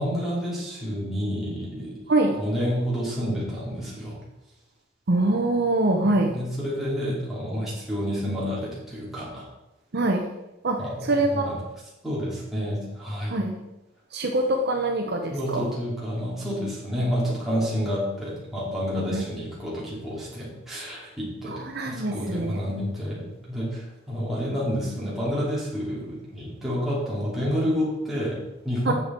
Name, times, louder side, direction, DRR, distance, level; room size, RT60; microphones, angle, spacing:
voice 1, 0.0-2.0 2.4-4.2 6.0-9.5 10.8-11.6 12.0-13.4 15.3-28.9, equal, ahead, -8 dB, 2.9 m, -29 dB
voice 2, 5.1-6.4 9.9-10.2 10.6-11.5 13.3-13.6 14.1-15.7 19.1-19.2 21.5-22.6 28.9-29.0, right 2 dB, 50° right, 3 dB, 0.8 m, -24 dB
8.7 x 6.9 x 4.4 m, 0.96 s
head